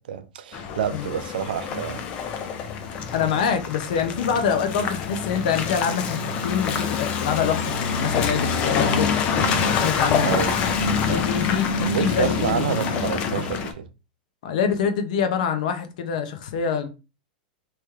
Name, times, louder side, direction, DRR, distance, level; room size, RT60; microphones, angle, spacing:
voice 1, 0.1-2.0 10.2-10.6 11.1-11.3 11.8-13.9, right 8 dB, 85° right, 0.6 m, -28 dB
Car passing by / Engine, 0.5-13.7, left 6 dB, 25° left, 0.4 m, -26 dB
voice 2, 3.1-9.2 9.7-10.3 11.0-12.8 14.4-16.9, left 7 dB, 55° left, 0.7 m, -25 dB
3.2 x 3.0 x 3.5 m
supercardioid pair, 175°, 5 cm